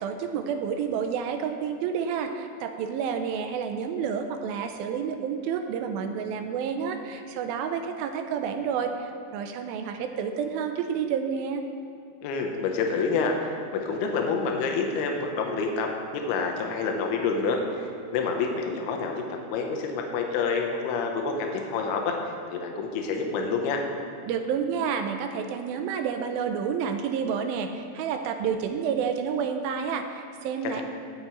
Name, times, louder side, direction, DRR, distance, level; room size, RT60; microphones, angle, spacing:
voice 1, 0.0-11.6 24.3-30.8, right 7 dB, 80° right, 6 dB, 2.3 m, -29 dB
voice 2, 12.2-15.9 16.1-23.8 30.7-30.8, left 4 dB, 85° left, 2 dB, 2.8 m, -28 dB
18.0 x 7.0 x 3.1 m, 2.6 s
omnidirectional pair, 4.5 m